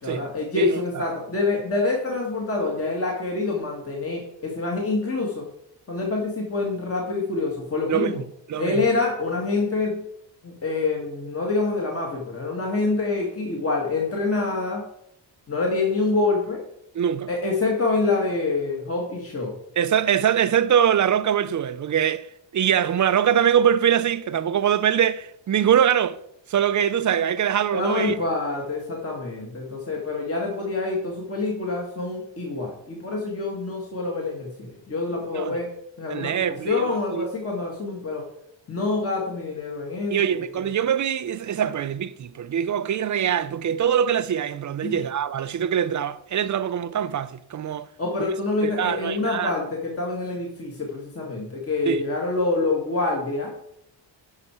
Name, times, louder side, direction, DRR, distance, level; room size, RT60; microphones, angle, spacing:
voice 1, 0.0-5.4 5.9-8.2 8.6-10.0 10.4-14.8 15.5-16.6 17.3-19.5 27.7-35.7 36.0-36.3 36.6-38.2 38.7-40.1 40.6-40.7 44.8-45.0 48.0-53.5, left 3 dB, 30° left, 1.6 m, -26 dB
voice 2, 0.6-1.0 7.9-8.9 16.9-17.3 19.8-22.3 22.5-26.2 26.5-28.2 35.3-35.6 36.1-37.3 40.1-47.9 48.6-49.5 51.9-52.0, right 9 dB, 40° right, 0.4 m, -23 dB
10.5 x 5.8 x 4.3 m
wide cardioid pair, 150°, 46 cm